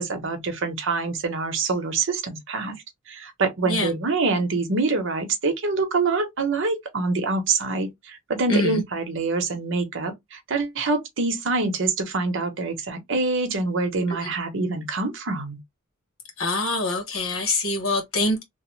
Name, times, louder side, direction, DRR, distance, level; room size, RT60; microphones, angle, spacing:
voice 1, 0.0-2.7 3.1-15.6, right 3 dB, 65° right, 0.8 m, -25 dB
voice 2, 8.5-8.8 14.1-14.2 16.4-18.4, left 2 dB, 85° left, 1.2 m, -25 dB
2.9 x 2.0 x 3.0 m
head